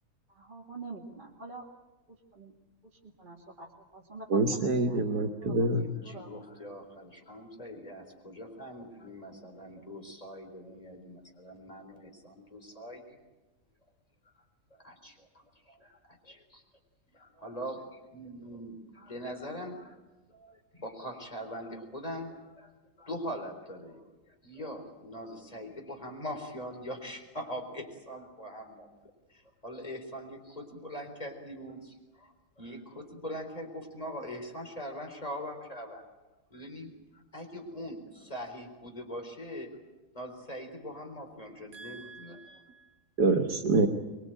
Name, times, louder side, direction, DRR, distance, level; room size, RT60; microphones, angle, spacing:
voice 1, 0.3-1.7 2.1-2.5 3.0-5.0 5.4-5.7 6.0-6.4, right 3 dB, 30° right, -2 dB, 2.2 m, -46 dB
voice 2, 4.3-5.9 41.7-42.6 43.2-43.9, right 3 dB, 80° right, 3 dB, 2.0 m, -27 dB
voice 3, 5.8-13.2 14.7-16.6 17.1-20.0 20.3-22.7 23.0-36.0 36.5-39.7 40.1-42.6, equal, 20° left, 4 dB, 4.2 m, -42 dB
25.0 x 22.0 x 9.0 m, 1.1 s
omnidirectional pair, 1.7 m